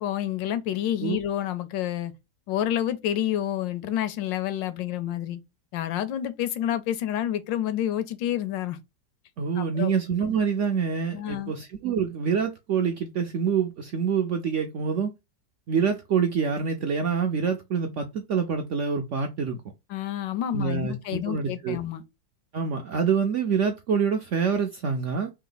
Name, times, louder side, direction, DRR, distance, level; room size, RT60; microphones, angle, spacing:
voice 1, 0.0-2.1 2.5-5.4 5.7-8.8 9.6-9.9 11.1-11.5 19.9-22.0, left 11 dB, 85° left, 1.4 m, -29 dB
voice 2, 9.4-15.1 15.7-19.6 20.5-21.8 22.5-25.3, right 6 dB, 75° right, 0.6 m, -26 dB
3.5 x 2.9 x 3.8 m
omnidirectional pair, 1.9 m